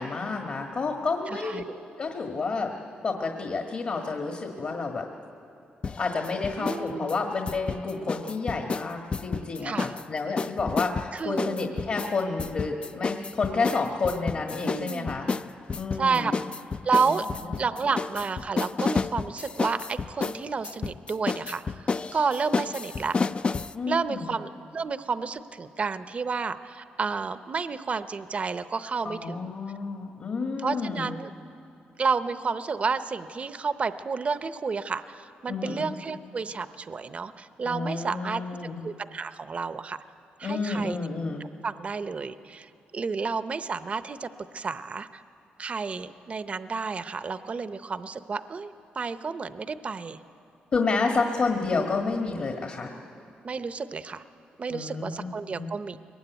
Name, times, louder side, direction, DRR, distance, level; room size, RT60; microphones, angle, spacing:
voice 1, 0.0-1.6 2.0-2.7 3.0-5.1 6.0-15.3 15.7-16.4 17.4-17.5 23.7-24.3 29.0-31.1 35.5-35.9 37.6-38.8 40.4-41.5 50.7-52.9 54.7-55.7, left 4 dB, 50° left, 3 dB, 1.6 m, -30 dB
voice 2, 1.3-1.8 6.6-7.2 9.6-9.9 11.1-11.7 14.6-15.1 16.0-16.3 16.8-17.3 17.6-23.2 23.9-29.5 30.6-31.3 32.0-38.4 38.8-40.0 40.4-41.0 41.4-45.2 45.6-50.2 53.4-54.2 54.6-56.0, right 5 dB, 40° right, 12 dB, 0.7 m, -31 dB
sound 1, 5.8-6.8 7.1-10.0 10.4-23.7, left 4 dB, 35° left, 0.4 m, -30 dB
22.5 x 19.5 x 9.3 m, 2.7 s
cardioid pair, 100°, 3 cm